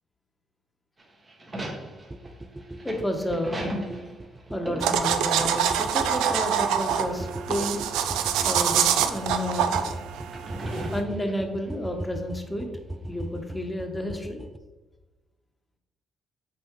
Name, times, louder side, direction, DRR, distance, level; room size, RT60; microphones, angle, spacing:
sound 1, 1.0-5.9 6.1-6.3 7.3-8.0 8.7-8.8 10.2-11.7, right 1 dB, 30° right, 1.5 m, -37 dB
sound 2, 2.1-14.6, right 1 dB, 15° right, 0.5 m, -39 dB
voice 1, 2.8-3.6 4.5-7.8 8.4-9.8 10.9-12.7 13.1-14.4, left 1 dB, 15° left, 4 dB, 1.1 m, -31 dB
sound 3, 4.8-11.0, right 8 dB, 90° right, 0.4 m, -25 dB
6.2 x 4.4 x 3.6 m, 1.2 s
supercardioid pair, 70°, 0 cm